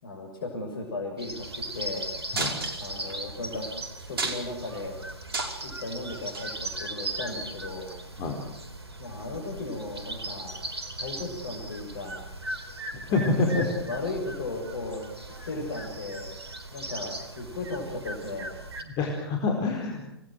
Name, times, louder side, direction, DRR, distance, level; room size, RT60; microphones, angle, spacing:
voice 1, 0.0-2.1 2.7-3.7 4.0-5.0 5.6-7.9 9.0-10.5 10.9-12.2 13.1-16.3 16.7-18.5, left 2 dB, 55° left, 0 dB, 7.1 m, -36 dB
sound 1, 1.2-18.8, right 2 dB, 80° right, 4.1 m, -38 dB
sound 2, 2.3-3.1 3.6-3.7 4.0-4.7 5.1-5.7 6.3-6.5 7.4-7.5, right 3 dB, 65° right, 5.3 m, -31 dB
voice 2, 13.1-13.7 18.8-20.1, left 3 dB, 30° left, 2 dB, 4.7 m, -26 dB
28.5 x 19.5 x 7.8 m, 0.85 s
figure-of-eight pair, 120°, 13 cm